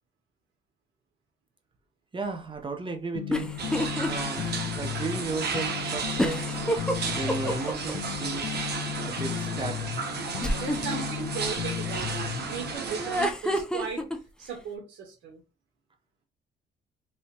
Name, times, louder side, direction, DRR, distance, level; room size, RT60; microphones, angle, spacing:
voice 1, 2.1-3.5 4.1-6.5 7.0-8.6 9.0-10.0, right 3 dB, 25° right, 0.8 m, -34 dB
sound 1, 3.2-12.8, left 11 dB, 60° left, 0.4 m, -35 dB
sound 2, 3.3-4.1 4.5-4.6 6.2-7.9 10.4-11.0 13.0-14.2, equal, 5° left, 0.5 m, -28 dB
sound 3, 3.6-13.3, right 5 dB, 55° right, 1.0 m, -33 dB
voice 2, 10.3-14.0 14.4-15.4, right 6 dB, 75° right, 0.9 m, -37 dB
3.2 x 2.9 x 2.9 m
cardioid pair, 90°, 20 cm